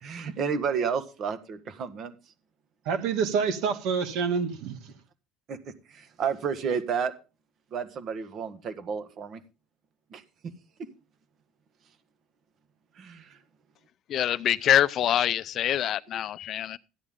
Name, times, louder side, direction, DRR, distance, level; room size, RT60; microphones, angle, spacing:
voice 1, 0.0-2.1 5.5-5.6 5.9-7.1 7.7-9.4 10.1-10.2 12.9-13.4, right 6 dB, 45° right, 1.6 m, -31 dB
voice 2, 2.9-4.9, right 6 dB, 70° right, 2.2 m, -27 dB
voice 3, 14.1-16.8, left 11 dB, 50° left, 0.6 m, -25 dB
14.0 x 9.6 x 3.7 m
cardioid pair, 120°, 0 cm